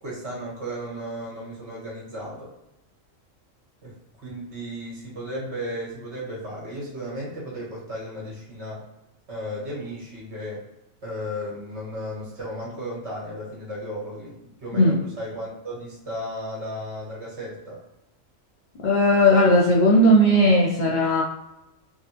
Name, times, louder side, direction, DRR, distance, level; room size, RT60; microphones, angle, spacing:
voice 1, 0.0-2.5 3.8-3.9 4.2-8.8 9.3-10.6 11.0-17.8, equal, 60° right, -5 dB, 1.6 m, -34 dB
voice 2, 18.8-21.2, equal, 65° left, -3 dB, 0.4 m, -17 dB
3.6 x 2.0 x 2.9 m, 0.91 s
omnidirectional pair, 1.3 m